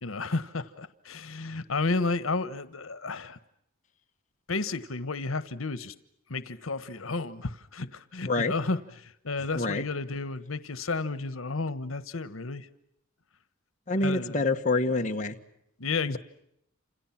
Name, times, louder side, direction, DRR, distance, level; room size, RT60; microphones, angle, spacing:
voice 1, 0.0-3.4 4.5-5.9 6.3-12.7 14.0-14.4 15.8-16.2, left 3 dB, 90° left, 14 dB, 1.3 m, -32 dB
voice 2, 13.9-15.3 16.1-16.2, left 2 dB, 40° left, 4 dB, 1.7 m, -26 dB
29.5 x 28.0 x 6.0 m, 0.77 s
head